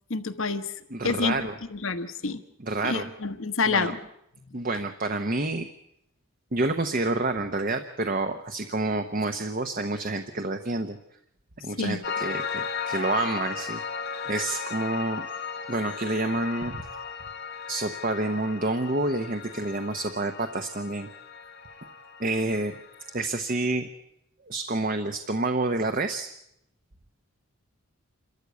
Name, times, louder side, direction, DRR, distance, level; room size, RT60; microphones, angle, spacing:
voice 1, 0.1-0.7 1.0-2.4 2.8-4.0 11.8-12.0, left 4 dB, 65° left, 10 dB, 1.2 m, -28 dB
voice 2, 0.9-1.5 2.6-3.1 3.6-4.0 4.5-5.7 6.5-11.0 11.6-13.8 14.2-15.3 15.7-16.8 17.7-21.1 22.2-22.8 23.1-23.9 24.5-26.3, right 2 dB, 40° right, 7 dB, 0.9 m, -28 dB
Piano, 12.0-23.3, left 6 dB, 50° left, 1.0 m, -36 dB
27.5 x 13.5 x 8.1 m, 0.79 s
head